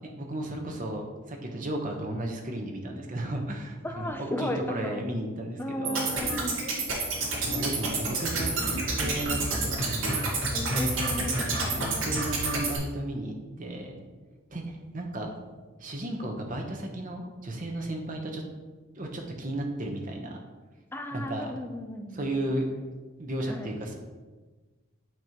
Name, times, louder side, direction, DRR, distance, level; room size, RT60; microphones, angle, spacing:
voice 1, 0.2-6.1 7.4-10.2 10.7-11.2 11.8-14.0 14.5-15.3 15.8-18.4 18.9-20.4 21.1-21.5 22.1-22.7 23.2-24.0, right 1 dB, 40° right, 2 dB, 1.0 m, -34 dB
voice 2, 3.8-5.0 5.6-6.7 8.6-9.3 10.5-11.9 20.9-22.4 23.5-23.8, left 1 dB, 10° left, 4 dB, 0.5 m, -35 dB
sound 1, 5.8-12.8, right 3 dB, 65° right, 1.7 m, -29 dB
9.1 x 3.1 x 5.2 m, 1.3 s
head